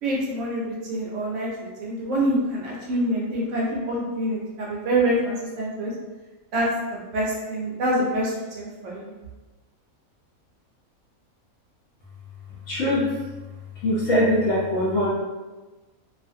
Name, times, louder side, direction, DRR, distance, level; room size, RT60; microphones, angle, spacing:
voice 1, 0.0-1.5 1.8-5.9 6.5-9.1, right 1 dB, 70° right, -4 dB, 0.8 m, -26 dB
voice 2, 12.7-13.1 13.8-15.1, left 1 dB, 60° left, -6 dB, 0.8 m, -22 dB
2.4 x 2.4 x 2.5 m, 1.2 s
omnidirectional pair, 1.5 m